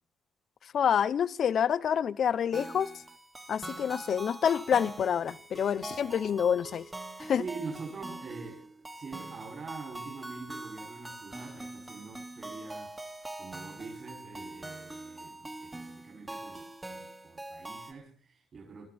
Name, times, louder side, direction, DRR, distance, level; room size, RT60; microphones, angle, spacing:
voice 1, 0.7-2.9 3.5-6.9 7.2-7.4, left 8 dB, 60° left, 16 dB, 0.8 m, -27 dB
sound 1, 2.5-17.9, right 2 dB, 20° right, 2.1 m, -43 dB
voice 2, 7.2-18.9, right 4 dB, 45° right, -1 dB, 5.8 m, -44 dB
24.5 x 13.0 x 4.3 m, 0.40 s
cardioid pair, 90°, 0 cm